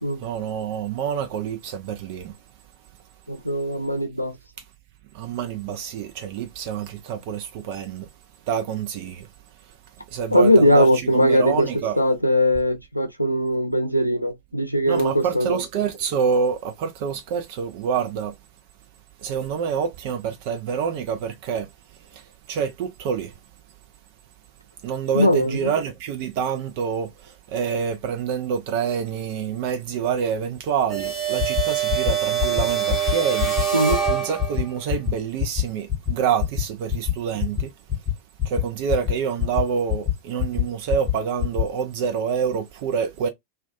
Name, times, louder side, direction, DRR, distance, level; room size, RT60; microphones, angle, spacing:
voice 1, 0.2-2.4 5.1-8.1 8.5-9.3 10.1-10.9 11.1-12.0 14.9-18.3 19.2-21.7 22.1-23.3 24.8-33.6 34.1-37.7 38.4-43.3, right 7 dB, 50° right, 0.4 m, -27 dB
voice 2, 3.3-4.4 10.3-11.7 12.0-15.6 25.1-25.7 33.7-34.0, equal, 90° left, 0.4 m, -20 dB
sound 1, 30.9-34.8, right 9 dB, 10° right, 0.9 m, -24 dB
sound 2, 31.4-31.6 31.9-32.1 32.4-32.6 32.9-33.1 33.4-33.6 33.9-34.1 34.4-34.6 34.9-35.1 35.4-35.6 35.9-36.1 36.4-36.6 36.9-37.1 37.4-37.6 37.9-38.1 38.4-38.6 38.9-39.1 39.4-39.6 39.9-40.1 40.4-40.6 40.9-41.1 41.4-41.6, left 11 dB, 30° left, 0.6 m, -22 dB
2.3 x 2.2 x 2.4 m
figure-of-eight pair, 90°, 0 cm